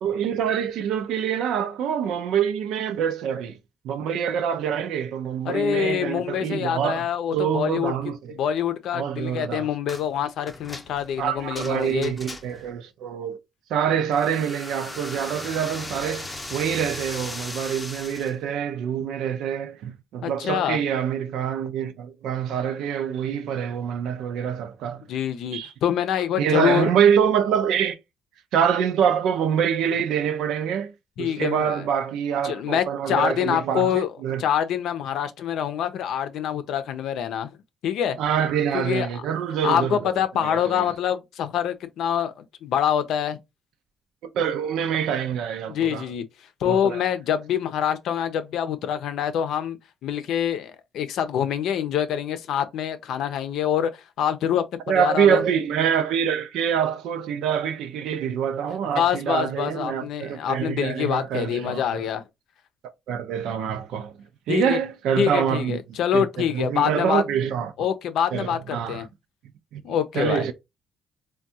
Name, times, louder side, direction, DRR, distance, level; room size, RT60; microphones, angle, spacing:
voice 1, 0.0-3.6 3.8-7.1 7.3-8.4 8.9-9.7 11.2-13.4 13.7-25.0 25.5-25.7 26.4-28.0 28.5-30.9 31.2-33.9 34.2-34.4 38.2-40.1 40.4-40.8 44.3-46.0 46.6-47.0 54.9-62.1 63.1-64.1 64.5-65.8 66.1-67.7 68.3-69.0 69.7-69.8 70.1-70.5, right 8 dB, 85° right, 0.5 m, -25 dB
voice 2, 5.4-7.9 8.3-12.1 20.2-20.8 25.1-26.9 31.2-31.9 32.4-34.1 34.4-37.5 37.8-38.2 38.7-39.1 39.6-43.4 45.7-46.2 46.6-49.8 50.0-55.4 59.0-62.2 64.5-64.8 65.2-67.2 67.8-69.1 69.8-70.5, left 9 dB, 80° left, 0.5 m, -25 dB
sound 1, 9.9-10.1 10.5-12.7 14.1-18.4, left 2 dB, 15° left, 0.6 m, -37 dB
3.5 x 2.3 x 2.7 m
cardioid pair, 90°, 0 cm